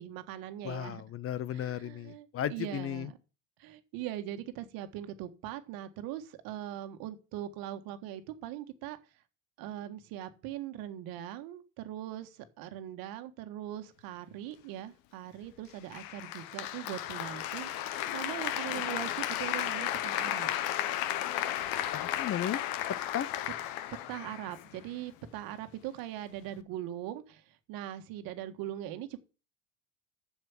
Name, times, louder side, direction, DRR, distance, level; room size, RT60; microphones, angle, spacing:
voice 1, 0.0-1.0 1.5-3.1 3.6-9.0 9.6-20.5 24.1-29.2, right 12 dB, 60° right, 1.6 m, -41 dB
voice 2, 0.6-3.1 21.9-22.6 23.1-23.3, left 10 dB, 35° left, 0.7 m, -35 dB
Applause, 15.9-24.9, left 12 dB, 60° left, 1.2 m, -34 dB
7.9 x 7.2 x 7.3 m
hypercardioid pair, 75°, 39 cm